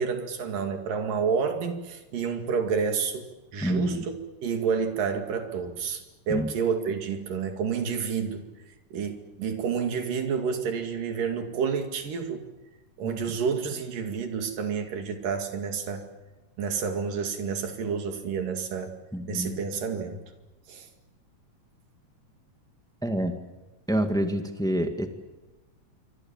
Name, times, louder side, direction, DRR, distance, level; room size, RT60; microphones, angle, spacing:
voice 1, 0.0-3.3 3.5-4.1 4.4-8.5 8.9-12.4 13.0-16.1 16.6-18.9 19.3-20.2 20.7-20.9, right 6 dB, 75° right, 5 dB, 4.0 m, -29 dB
voice 2, 3.6-4.0 6.3-6.5 13.0-13.2 19.1-19.6 23.0-23.4 23.9-25.1, equal, 5° left, 6 dB, 0.8 m, -27 dB
26.5 x 25.0 x 7.4 m, 1.1 s
omnidirectional pair, 3.9 m